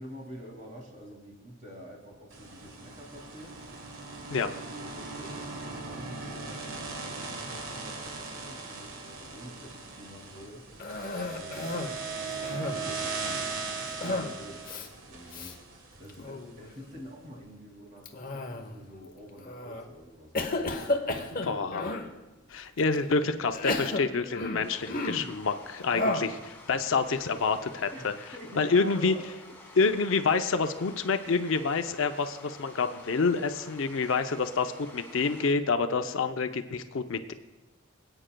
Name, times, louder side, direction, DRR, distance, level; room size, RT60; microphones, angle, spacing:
voice 1, 0.0-3.6 4.4-10.9 11.3-13.5 13.8-21.6 27.9-28.1 28.3-29.3 29.6-29.9, equal, 35° right, 0 dB, 2.4 m, -48 dB
sound 1, 2.3-16.5, right 4 dB, 70° right, 1.4 m, -39 dB
Cough, 10.8-12.0 12.3-13.0 14.0-14.4 14.6-14.9 15.3-15.5 16.1-16.5 18.1-18.8 19.4-19.8 20.3-22.1 22.8-22.9 23.5-25.3 25.9-26.4, left 2 dB, 40° left, 0.9 m, -32 dB
voice 2, 21.4-21.9 22.5-28.1 28.6-29.1 29.8-37.3, left 4 dB, 65° left, 8 dB, 0.6 m, -28 dB
sound 2, 24.6-35.5, left 2 dB, 10° left, 1.5 m, -50 dB
24.5 x 8.8 x 2.2 m, 1.1 s
head